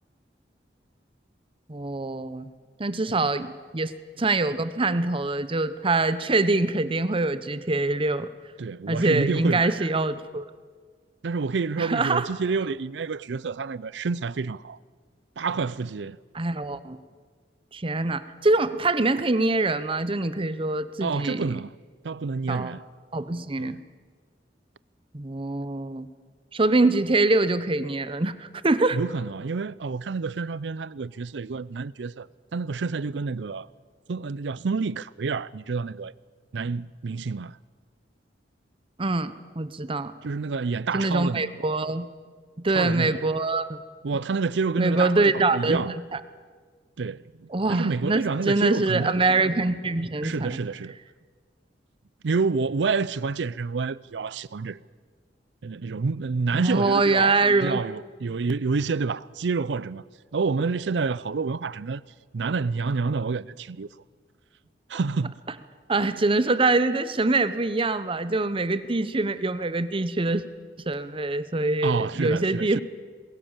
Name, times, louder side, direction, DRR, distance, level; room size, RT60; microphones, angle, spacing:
voice 1, 1.7-2.5 2.8-3.9 4.2-8.3 8.9-10.5 11.8-12.3 16.3-17.0 17.7-21.6 22.5-22.7 23.1-23.8 25.1-26.1 26.5-29.0 39.0-40.1 40.9-42.1 42.6-43.8 44.8-45.8 46.1-46.2 47.5-48.2 48.5-50.6 56.5-57.8 65.9-70.4 70.9-72.8, right 2 dB, 30° right, 0.8 m, -24 dB
voice 2, 8.6-9.9 11.2-14.8 15.4-16.2 21.0-21.7 22.0-22.8 23.6-23.7 28.9-33.7 34.1-36.1 36.5-37.6 40.2-41.5 42.7-43.2 44.0-45.2 45.5-46.0 47.0-49.1 50.2-51.0 52.2-54.8 55.6-60.0 60.3-62.0 62.3-63.9 64.9-65.3 71.8-72.8, right 4 dB, 70° right, 0.5 m, -28 dB
22.0 x 16.5 x 7.3 m
head